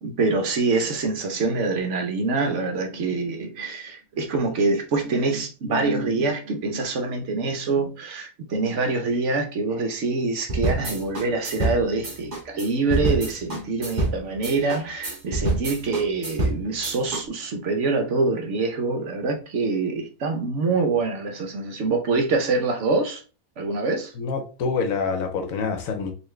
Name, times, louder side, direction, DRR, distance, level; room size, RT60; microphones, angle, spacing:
voice 1, 0.0-23.2 23.6-24.1, right 3 dB, 60° right, 0.9 m, -25 dB
sound 1, 10.5-17.2, right 2 dB, 35° right, 1.2 m, -27 dB
voice 2, 24.2-26.1, left 5 dB, 70° left, 1.1 m, -26 dB
4.0 x 2.5 x 3.1 m
omnidirectional pair, 1.5 m